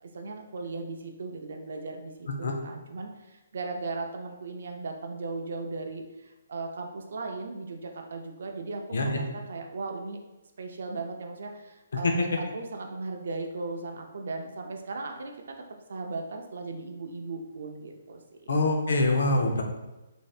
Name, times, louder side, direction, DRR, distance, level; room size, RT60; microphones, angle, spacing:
voice 1, 0.0-10.2 10.6-15.3 15.9-18.5, right 3 dB, 60° right, 3 dB, 0.4 m, -37 dB
voice 2, 18.5-19.6, left 2 dB, 65° left, 2 dB, 0.5 m, -24 dB
3.2 x 2.6 x 2.3 m, 1.0 s
hypercardioid pair, 175°, 0 cm